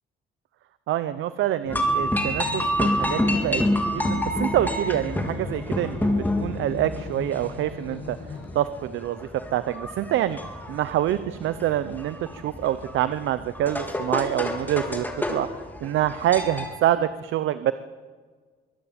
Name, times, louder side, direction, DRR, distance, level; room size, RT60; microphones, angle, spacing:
voice 1, 0.9-3.6 3.9-8.2 8.5-10.4 10.7-15.5 15.8-17.7, right 12 dB, 80° right, 13 dB, 0.8 m, -26 dB
sound 1, 1.6-8.5, left 4 dB, 65° left, 5.4 m, -38 dB
sound 2, 1.7-16.8, left 1 dB, 10° left, 3.7 m, -28 dB
24.0 x 17.5 x 8.7 m, 1.5 s
cardioid pair, 90°, 20 cm